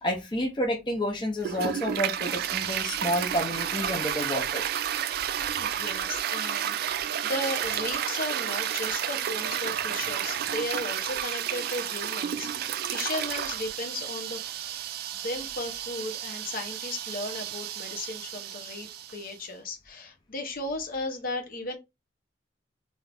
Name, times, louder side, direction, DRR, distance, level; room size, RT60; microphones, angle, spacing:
voice 1, 0.0-4.8, equal, 25° left, 0.6 m, -30 dB
Toilet flush, 1.4-19.3, right 10 dB, 60° right, 0.3 m, -31 dB
voice 2, 5.6-14.8 15.1-21.8, left 2 dB, 50° left, 0.8 m, -35 dB
2.7 x 2.5 x 3.3 m
head